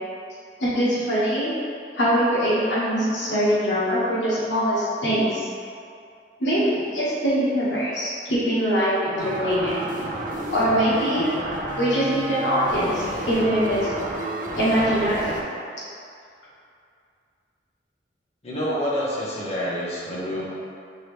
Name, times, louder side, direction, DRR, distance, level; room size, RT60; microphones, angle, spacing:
voice 1, 0.6-1.5 1.9-5.4 6.4-9.7 10.5-11.3 11.8-13.9 14.6-15.4, equal, 90° left, -9 dB, 1.4 m, -22 dB
sound 1, 9.2-15.4, right 1 dB, 45° right, 0.5 m, -30 dB
voice 2, 18.4-20.5, equal, 35° left, -8 dB, 1.0 m, -27 dB
4.7 x 3.0 x 3.2 m, 2.4 s
head